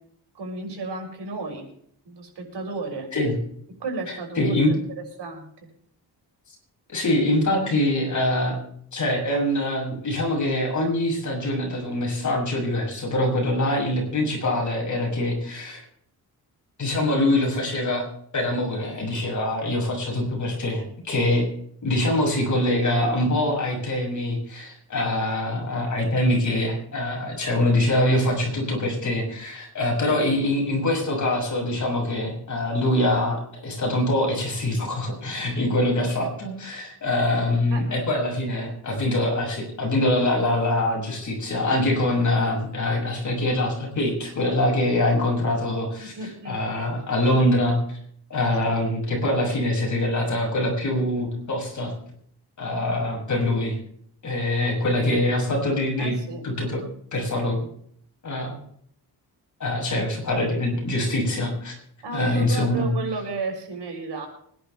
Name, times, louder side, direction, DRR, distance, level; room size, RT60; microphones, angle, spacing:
voice 1, 0.3-1.6 2.0-3.1 3.8-4.8 5.2-5.5 37.7-37.9 46.0-46.6 48.6-48.8 56.0-56.4 62.0-64.3, right 3 dB, 90° right, 1 dB, 6.6 m, -33 dB
voice 2, 4.3-4.7 6.9-8.6 8.9-15.8 16.8-18.0 18.3-21.5 21.8-47.8 48.3-51.9 52.6-53.8 54.2-56.2 56.4-56.8 57.1-57.7 58.2-58.6 59.6-61.7 62.1-62.9, left 1 dB, 45° left, 0 dB, 6.7 m, -24 dB
25.0 x 11.0 x 3.4 m, 0.64 s
wide cardioid pair, 160°, 40 cm